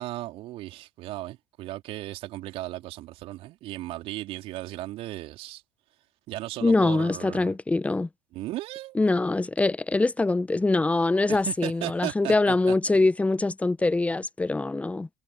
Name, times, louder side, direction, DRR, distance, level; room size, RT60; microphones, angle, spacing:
voice 1, 0.0-5.6 6.3-7.6 8.3-9.0 11.3-12.8, right 16 dB, 50° right, 3.5 m, -36 dB
voice 2, 6.6-8.1 8.9-15.1, left 2 dB, 10° left, 1.1 m, -23 dB
figure-of-eight pair, 70°, 12 cm